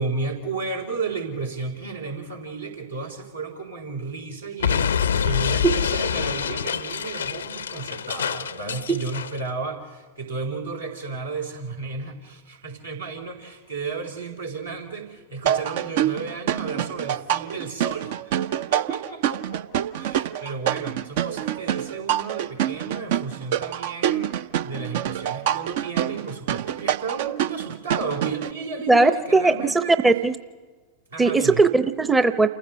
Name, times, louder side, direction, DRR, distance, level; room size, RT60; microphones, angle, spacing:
voice 1, 0.0-29.9 31.1-31.6, right 4 dB, 80° right, 0 dB, 4.1 m, -33 dB
Explosion, 4.6-9.4, left 7 dB, 70° left, 0.6 m, -26 dB
sound 1, 15.5-28.5, right 11 dB, 50° right, 0.6 m, -26 dB
voice 2, 28.9-30.3 31.2-32.5, right 3 dB, 10° right, 11 dB, 0.7 m, -18 dB
28.5 x 15.0 x 6.8 m, 1.3 s
figure-of-eight pair, 90°, 0 cm